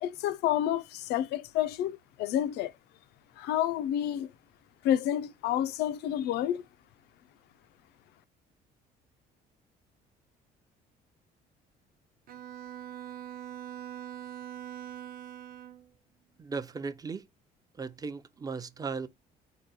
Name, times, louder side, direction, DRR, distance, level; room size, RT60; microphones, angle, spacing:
voice 1, 0.0-2.7 3.4-4.3 4.8-6.6, left 11 dB, 80° left, 0.4 m, -29 dB
Bowed string instrument, 12.3-15.9, right 11 dB, 60° right, 0.7 m, -43 dB
voice 2, 16.4-17.3 17.8-19.1, right 5 dB, 20° right, 0.4 m, -36 dB
3.8 x 2.2 x 4.1 m
cardioid pair, 110°, 17 cm